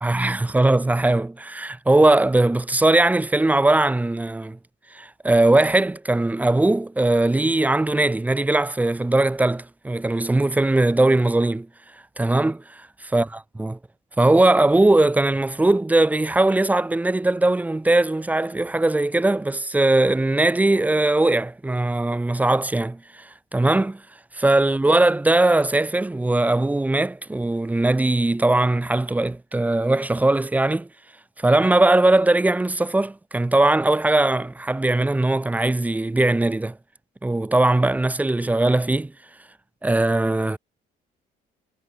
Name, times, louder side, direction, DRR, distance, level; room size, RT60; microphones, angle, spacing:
voice 1, 0.0-4.6 4.9-11.7 12.2-12.6 13.1-13.8 14.2-24.0 24.3-30.9 31.4-36.8 37.2-39.1 39.8-40.6, right 2 dB, 10° right, 0.7 m, -20 dB
cardioid pair, 110°, 17 cm